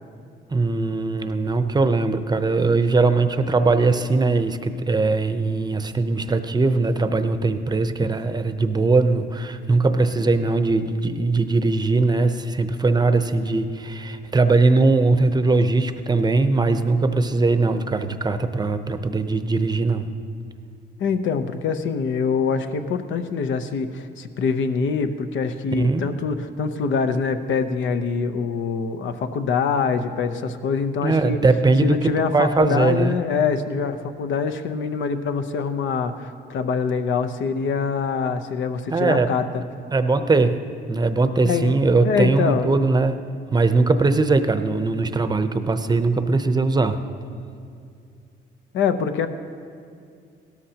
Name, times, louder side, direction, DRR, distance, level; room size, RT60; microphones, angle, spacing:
voice 1, 0.5-20.1 25.8-26.1 31.0-32.0 32.3-33.1 38.9-39.3 39.9-40.6 40.9-43.2 43.5-47.0, right 3 dB, 20° right, 9 dB, 0.7 m, -20 dB
voice 2, 21.0-31.4 31.8-39.5 41.4-41.7 42.0-42.7 48.7-49.3, left 5 dB, 75° left, 9 dB, 0.8 m, -24 dB
17.0 x 13.5 x 2.9 m, 2.3 s
cardioid pair, 90°, 20 cm